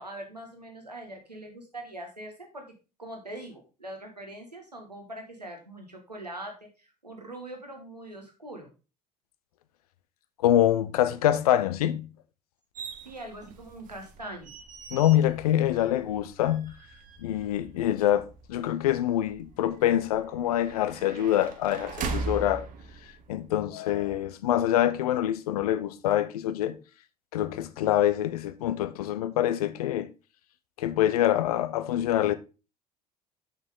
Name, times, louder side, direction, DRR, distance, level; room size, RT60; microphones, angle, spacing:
voice 1, 0.0-2.6 3.0-8.7 13.0-14.5, right 1 dB, 90° right, 1.4 m, -42 dB
voice 2, 10.4-12.1 14.9-16.7 17.2-22.6 23.3-26.8 27.3-30.1 30.8-32.3, left 12 dB, 70° left, 0.7 m, -25 dB
sound 1, 12.8-23.6, right 4 dB, 40° right, 1.1 m, -41 dB
7.1 x 6.3 x 3.7 m
figure-of-eight pair, 60°, 20 cm